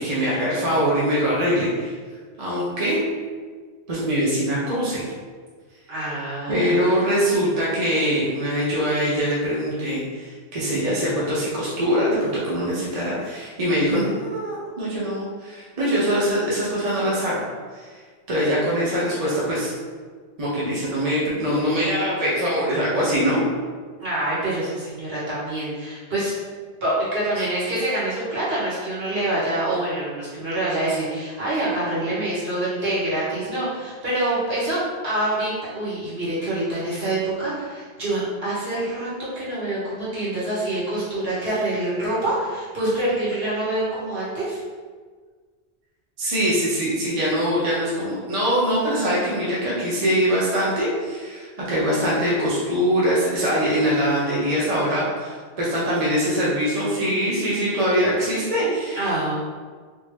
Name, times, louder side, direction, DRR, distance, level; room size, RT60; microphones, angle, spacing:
voice 1, 0.0-1.9 2.4-3.0 3.9-5.0 6.5-17.4 17.7-17.9 18.3-19.7 20.4-23.4 46.2-59.0, equal, 40° right, -7 dB, 0.8 m, -23 dB
voice 2, 5.9-7.4 24.0-26.3 26.8-39.1 39.3-44.6 58.9-59.3, right 1 dB, 60° right, -10 dB, 1.7 m, -26 dB
3.4 x 2.8 x 3.2 m, 1.5 s
omnidirectional pair, 1.1 m